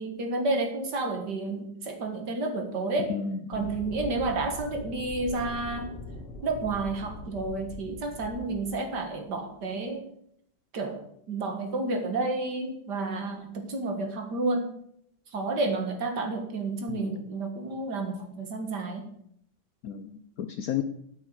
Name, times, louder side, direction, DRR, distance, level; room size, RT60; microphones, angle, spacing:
voice 1, 0.0-3.1 3.5-5.9 6.4-10.0 10.7-11.0 11.3-14.7 15.3-19.1, right 3 dB, 65° right, 4 dB, 2.2 m, -30 dB
voice 2, 3.1-3.8 16.9-17.1 19.8-20.8, left 8 dB, 65° left, 8 dB, 1.0 m, -33 dB
sound 1, 3.5-9.8, left 1 dB, 35° left, 2.0 m, -42 dB
8.9 x 6.3 x 8.0 m, 0.71 s
omnidirectional pair, 2.0 m